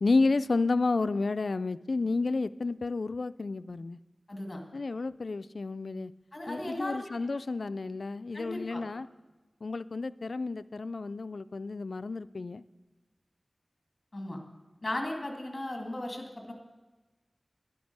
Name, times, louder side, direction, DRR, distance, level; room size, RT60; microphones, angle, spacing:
voice 1, 0.0-4.0 4.7-6.1 6.5-9.1 9.6-12.6, left 3 dB, 80° left, 15 dB, 0.3 m, -31 dB
voice 2, 4.3-4.6 6.3-7.0 8.3-8.8 14.1-14.4 14.8-16.5, left 1 dB, 40° left, 3 dB, 2.1 m, -36 dB
11.5 x 10.5 x 5.3 m, 1.2 s
wide cardioid pair, 65°, 0 cm